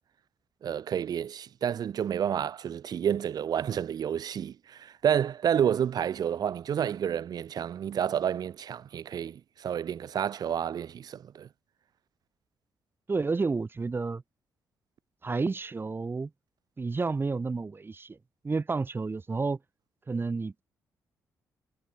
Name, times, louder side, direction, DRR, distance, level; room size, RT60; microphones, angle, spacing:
voice 1, 0.6-11.5, right 9 dB, 65° right, 2.1 m, -30 dB
voice 2, 13.1-14.2 15.2-16.3 16.8-18.2 18.4-19.6 20.1-20.6, right 4 dB, 30° right, 2.1 m, -30 dB
cardioid pair, 75°, 7 cm